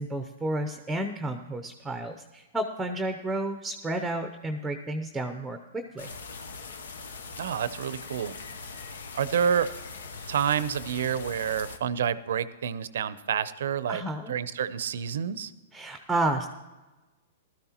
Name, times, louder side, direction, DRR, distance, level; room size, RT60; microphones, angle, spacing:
voice 1, 0.0-6.1 13.9-14.3 15.7-16.5, right 1 dB, 5° right, 7 dB, 0.7 m, -31 dB
sound 1, 6.0-11.8, left 4 dB, 80° left, 0.9 m, -41 dB
voice 2, 7.4-8.3 9.1-9.7 10.3-14.0 14.3-15.5, right 8 dB, 70° right, 16 dB, 0.6 m, -28 dB
16.0 x 12.5 x 3.0 m, 1.2 s
hypercardioid pair, 125°, 0 cm